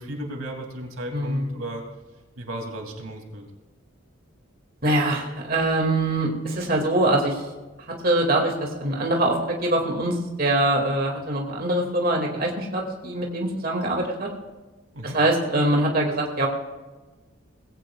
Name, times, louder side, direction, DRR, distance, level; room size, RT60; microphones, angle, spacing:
voice 1, 0.0-1.8 2.4-3.4 14.9-15.2, right 1 dB, 90° right, 2 dB, 2.8 m, -34 dB
voice 2, 1.1-1.5 4.8-7.4 8.0-14.3 15.0-16.5, right 1 dB, 45° right, 0 dB, 2.3 m, -23 dB
20.5 x 16.5 x 2.4 m, 1.2 s
head